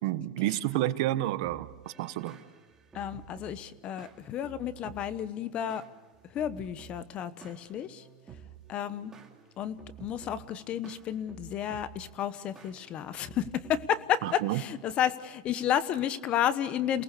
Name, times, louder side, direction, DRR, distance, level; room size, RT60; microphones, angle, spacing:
voice 1, 0.0-2.4 14.2-14.6, right 15 dB, 70° right, 1.1 m, -30 dB
sound 1, 1.4-15.1, right 8 dB, 20° right, 2.7 m, -52 dB
voice 2, 2.9-5.8 6.3-8.0 8.7-9.1 9.6-17.0, left 10 dB, 40° left, 1.1 m, -31 dB
28.0 x 19.0 x 6.8 m
supercardioid pair, 130°, 3 cm